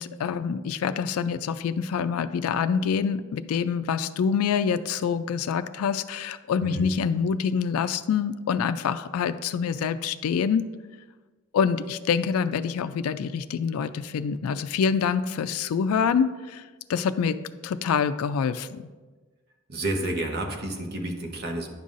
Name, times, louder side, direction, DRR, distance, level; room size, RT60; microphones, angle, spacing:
voice 1, 0.0-10.7 11.5-16.6 16.9-17.4 17.6-18.8, left 6 dB, 80° left, 12 dB, 0.3 m, -26 dB
voice 2, 19.7-21.7, right 1 dB, 45° right, 3 dB, 0.9 m, -30 dB
9.7 x 5.5 x 2.5 m, 1.3 s
head